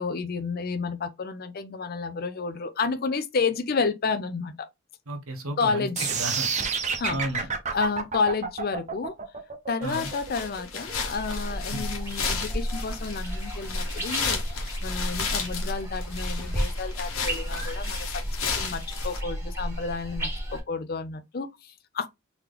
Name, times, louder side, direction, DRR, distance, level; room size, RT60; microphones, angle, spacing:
voice 1, 0.0-4.7 5.6-6.1 7.0-7.2 7.7-9.2 9.7-18.3 18.6-22.1, left 4 dB, 45° left, 0.5 m, -30 dB
voice 2, 5.1-6.5 7.1-7.5 9.8-10.1 11.7-11.9, right 1 dB, 85° right, 1.1 m, -33 dB
sound 1, 6.0-12.0, right 6 dB, 35° right, 0.7 m, -30 dB
sound 2, 9.8-19.2, left 5 dB, 85° left, 1.2 m, -34 dB
sound 3, 11.1-20.6, equal, 15° right, 1.2 m, -33 dB
4.0 x 2.9 x 3.4 m
head